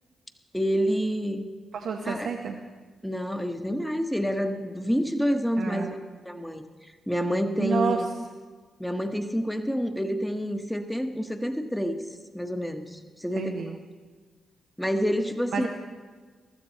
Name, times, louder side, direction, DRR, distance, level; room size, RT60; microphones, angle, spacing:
voice 1, 0.5-1.4 2.0-2.3 3.0-6.0 6.2-6.6 7.1-8.0 8.8-12.0 12.3-13.6 14.8-15.7, equal, 5° left, 6 dB, 1.3 m, -28 dB
voice 2, 1.7-2.6 5.6-5.9 7.6-8.0 13.4-13.8 15.5-15.7, right 6 dB, 75° right, 1 dB, 0.9 m, -30 dB
15.5 x 13.0 x 4.2 m, 1.5 s
supercardioid pair, 55°, 0 cm